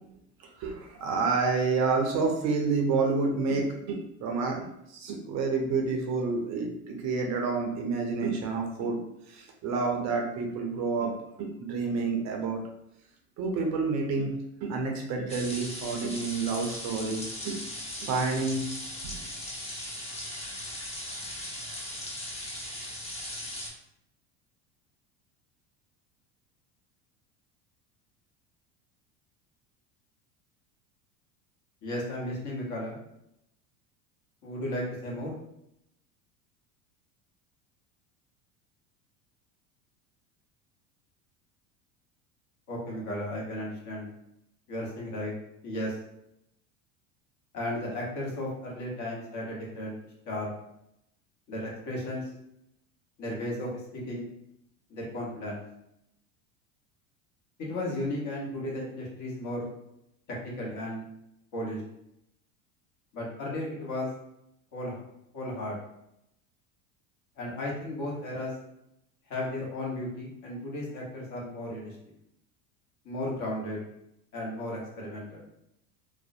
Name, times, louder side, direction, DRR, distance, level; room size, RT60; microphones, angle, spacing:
voice 1, 0.4-9.0 9.3-11.1 11.4-12.6 13.4-17.6 18.0-18.7 19.0-19.1, right 4 dB, 40° right, 2 dB, 0.5 m, -29 dB
sound 1, 15.3-23.7, left 1 dB, 15° left, 0.7 m, -38 dB
voice 2, 31.8-33.0 34.4-35.3 42.7-44.1 44.7-45.3 45.6-46.0 47.5-49.9 50.2-50.5 51.5-52.3 53.2-53.8 54.1-54.3 54.9-55.6 57.6-59.7 60.4-61.0 61.5-61.8 63.1-64.1 64.7-65.0 65.3-65.8 67.4-68.5 69.3-72.0 73.0-73.8 74.3-75.4, left 1 dB, 45° left, -3 dB, 1.1 m, -34 dB
2.4 x 2.0 x 2.6 m, 0.80 s
hypercardioid pair, 80°, 42 cm